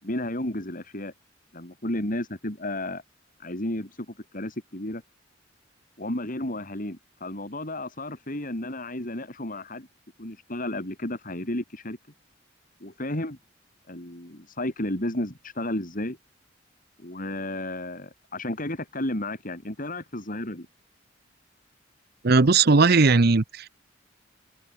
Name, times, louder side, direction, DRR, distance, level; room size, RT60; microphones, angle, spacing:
voice 1, 0.0-1.1 1.5-3.0 3.4-5.0 6.0-9.9 10.2-12.0 12.8-13.4 13.9-16.2 17.0-20.7, left 1 dB, 45° left, 4.6 m, -32 dB
voice 2, 22.2-23.7, right 4 dB, 55° right, 0.8 m, -18 dB
head